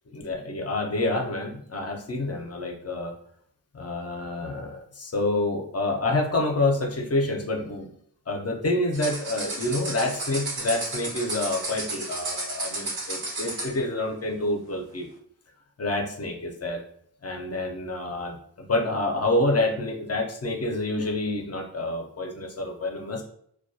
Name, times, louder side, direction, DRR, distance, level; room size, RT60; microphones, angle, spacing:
voice 1, 0.1-3.1 3.7-7.9 8.3-15.1 15.8-16.8 17.2-18.4 18.7-23.2, left 2 dB, 40° left, 2 dB, 0.4 m, -28 dB
sound 1, 8.9-13.8, right 2 dB, 65° right, 1.0 m, -33 dB
2.2 x 2.2 x 2.6 m, 0.67 s
wide cardioid pair, 85°, 41 cm